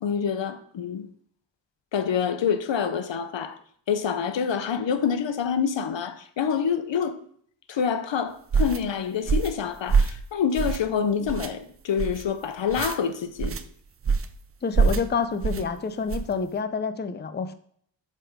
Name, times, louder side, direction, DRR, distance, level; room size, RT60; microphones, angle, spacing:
voice 1, 0.0-1.1 1.9-3.6 3.9-7.2 7.7-13.6, left 7 dB, 75° left, 0.7 m, -27 dB
sound 1, 8.5-8.8 9.3-9.6 9.9-10.2 10.6-10.9 11.3-11.5 12.0-12.2 12.7-13.0 13.4-13.6 14.0-14.4 14.7-15.0 15.4-15.6 16.1-16.3, right 5 dB, 30° right, 0.5 m, -24 dB
voice 2, 14.6-17.5, left 5 dB, 25° left, 0.5 m, -28 dB
7.4 x 3.5 x 5.0 m
wide cardioid pair, 85°, 44 cm